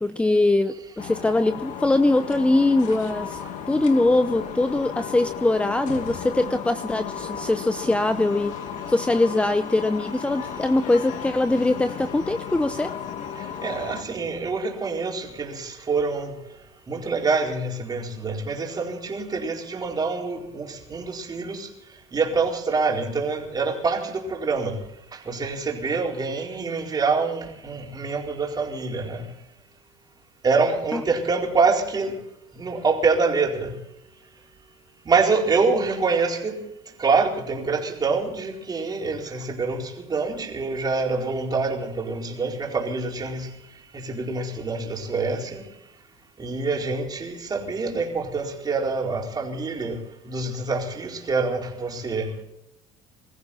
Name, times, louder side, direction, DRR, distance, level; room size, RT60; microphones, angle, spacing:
voice 1, 0.0-3.4 3.7-8.5 8.9-12.9 30.9-31.0, left 2 dB, 10° left, 11 dB, 0.7 m, -22 dB
sound 1, 1.0-14.0, left 8 dB, 60° left, 2.2 m, -35 dB
voice 2, 13.6-16.3 16.9-21.7 22.1-24.8 25.3-29.3 30.4-32.1 32.6-33.7 35.1-36.6 37.0-43.5 43.9-45.6 46.4-50.0 50.3-52.3, right 4 dB, 30° right, 0 dB, 4.4 m, -25 dB
23.5 x 14.5 x 4.3 m, 0.80 s
supercardioid pair, 110°, 14 cm